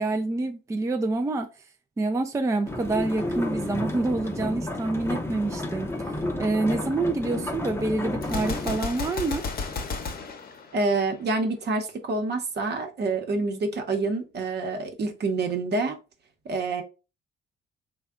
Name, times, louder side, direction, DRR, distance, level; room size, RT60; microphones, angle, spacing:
voice 1, 0.0-1.5 2.0-9.5, right 2 dB, 15° right, 0.4 m, -27 dB
sound 1, 2.6-8.8, left 1 dB, 10° left, 0.7 m, -31 dB
Gunshot gunfire, 8.2-11.3, left 4 dB, 50° left, 0.8 m, -33 dB
voice 2, 10.7-16.0 16.4-16.8, right 3 dB, 55° right, 0.9 m, -27 dB
3.4 x 2.3 x 3.5 m
cardioid pair, 90°, 20 cm